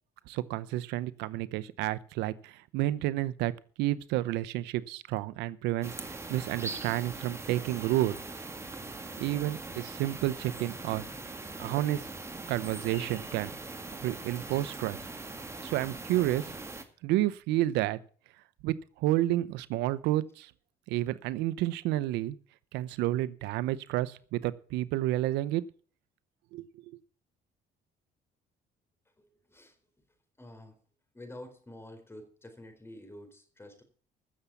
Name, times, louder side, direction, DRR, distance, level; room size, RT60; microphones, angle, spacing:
voice 1, 0.3-3.5 3.8-8.1 9.2-11.0 11.6-12.0 12.5-13.5 14.0-15.0 15.6-16.5 17.0-18.0 18.6-20.5 20.9-22.4 22.7-25.6 26.5-26.6, right 15 dB, 90° right, 15 dB, 0.7 m, -30 dB
sound 1, 5.8-16.8, right 3 dB, 15° right, 2.1 m, -41 dB
voice 2, 29.2-29.8 30.4-30.8 31.1-33.8, left 1 dB, 15° left, 6 dB, 4.3 m, -49 dB
15.0 x 7.1 x 7.2 m, 0.44 s
cardioid pair, 110°, 17 cm